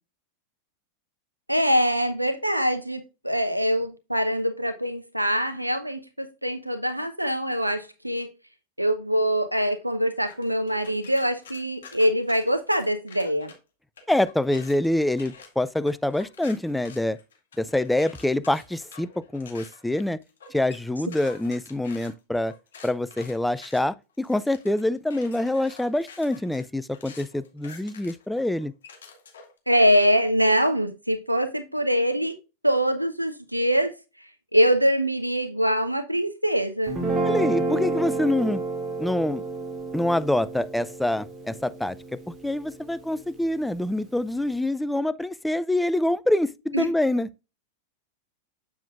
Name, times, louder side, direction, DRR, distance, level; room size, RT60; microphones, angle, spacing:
voice 1, 1.5-8.3 8.8-13.5 29.7-32.4 32.6-33.9 34.5-37.0 46.7-46.9, equal, 90° right, 0.8 m, -23 dB
sound 1, 10.3-13.6 14.0-29.6, left 5 dB, 65° left, 2.0 m, -48 dB
voice 2, 14.1-17.2 17.6-20.2 20.5-22.5 22.8-28.7 37.2-38.6 39.0-39.4 39.9-47.3, left 1 dB, 5° left, 0.4 m, -25 dB
Guitar, 36.9-43.2, right 3 dB, 20° right, 2.1 m, -30 dB
7.4 x 7.1 x 2.4 m
figure-of-eight pair, 90°, 0 cm